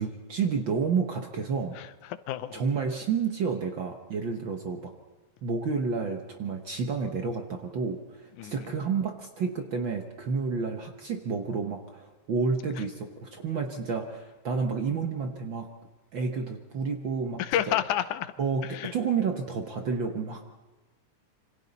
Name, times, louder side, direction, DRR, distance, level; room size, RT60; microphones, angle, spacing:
voice 1, 0.0-1.8 2.5-4.9 5.4-15.7 16.1-17.4 17.7-17.8 18.4-20.5, right 5 dB, 55° right, 4 dB, 1.4 m, -30 dB
voice 2, 1.8-2.6 8.4-8.7 17.4-18.3 18.6-18.9, left 11 dB, 85° left, 13 dB, 2.3 m, -30 dB
27.0 x 25.0 x 4.1 m, 1.2 s
omnidirectional pair, 3.4 m